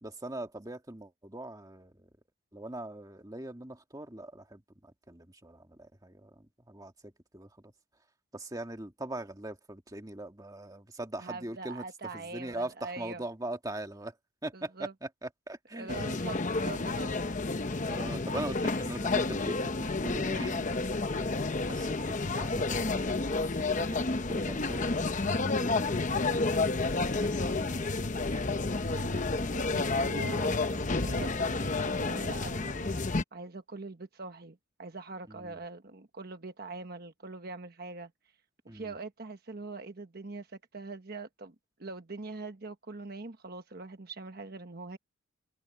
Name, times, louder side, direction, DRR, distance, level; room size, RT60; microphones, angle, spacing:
voice 1, 0.0-1.9 2.5-7.7 8.3-11.8 12.1-14.1 14.4-14.9 15.2-16.0 17.9-24.0 24.3-26.7 27.2-28.4 35.3-35.6 38.7-38.9, right 1 dB, 15° right, 1.8 m, -42 dB
voice 2, 11.2-13.2 14.5-14.9 15.7-17.1 28.8-33.0 33.3-38.1 38.7-45.0, right 3 dB, 50° right, 1.2 m, -43 dB
sound 1, 15.9-33.2, left 3 dB, 35° left, 0.8 m, -30 dB
head